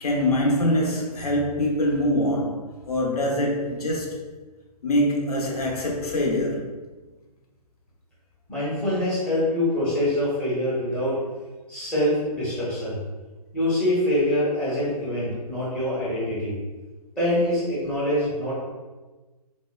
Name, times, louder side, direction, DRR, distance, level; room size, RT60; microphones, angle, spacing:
voice 1, 0.0-4.3 4.8-6.6, left 1 dB, 70° left, 0.8 m, -24 dB
voice 2, 8.5-11.1 11.7-13.0 13.5-16.6 17.2-18.5, left 1 dB, 5° left, 0.7 m, -24 dB
4.3 x 2.1 x 2.2 m
hypercardioid pair, 160°, 20 cm